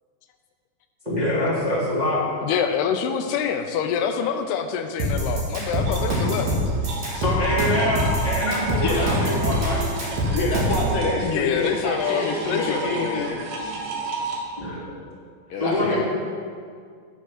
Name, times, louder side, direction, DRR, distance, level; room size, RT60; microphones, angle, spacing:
voice 1, 1.0-2.2 7.1-9.9 14.6-14.8 15.6-16.0, left 1 dB, 15° right, -10 dB, 2.1 m, -24 dB
voice 2, 2.4-6.6 11.2-13.8, left 7 dB, 85° left, 6 dB, 2.7 m, -26 dB
sound 1, 5.0-10.9, equal, 45° right, 3.0 m, -24 dB
sound 2, 5.9-14.4, right 3 dB, 80° right, 3.3 m, -33 dB
voice 3, 8.8-9.1 10.3-13.3 15.5-16.0, left 3 dB, 70° left, -2 dB, 2.4 m, -26 dB
10.0 x 7.1 x 6.2 m, 2.1 s
omnidirectional pair, 4.7 m